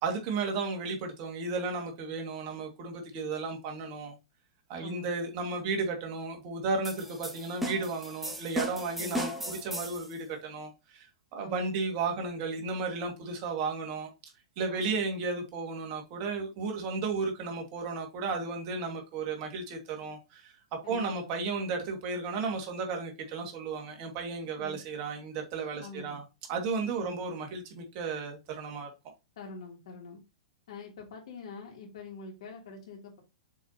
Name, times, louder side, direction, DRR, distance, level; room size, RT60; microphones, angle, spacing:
voice 1, 0.0-4.1 4.7-14.1 14.6-20.5 20.9-26.2 26.5-28.9, right 4 dB, 45° right, 2.1 m, -34 dB
voice 2, 4.8-5.1 9.0-9.2 11.4-11.7 14.7-15.0 20.8-21.3 24.6-24.8 25.8-26.2 27.0-27.2 29.4-30.2 30.7-33.2, left 3 dB, 65° left, 3.0 m, -45 dB
sound 1, 6.8-10.1, equal, 5° right, 2.0 m, -36 dB
7.0 x 4.7 x 2.9 m
hypercardioid pair, 110°, 3 cm